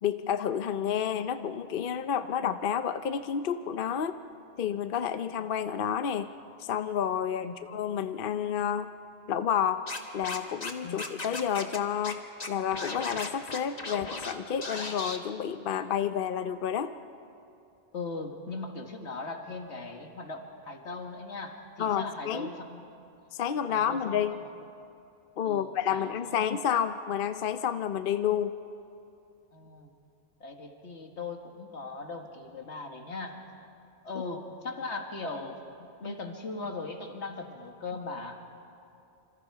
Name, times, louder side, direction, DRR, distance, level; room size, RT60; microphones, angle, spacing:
voice 1, 0.0-4.2 4.6-6.3 6.6-8.9 9.3-9.8 10.1-12.2 12.5-16.9 21.8-22.5 23.3-24.3 25.4-28.5 36.0-36.1, left 8 dB, 55° left, 10 dB, 0.8 m, -30 dB
Scratching (performance technique), 9.9-10.7 11.0-11.8 12.0-12.1 12.4-14.3 14.6-15.2, left 3 dB, 35° left, 1.4 m, -36 dB
voice 2, 17.9-22.9 23.7-24.5 25.4-26.3 29.5-29.9 30.4-33.4 34.0-35.6 36.0-38.4, left 3 dB, 80° left, 3 dB, 2.1 m, -39 dB
26.5 x 26.5 x 4.8 m, 2.7 s
omnidirectional pair, 1.1 m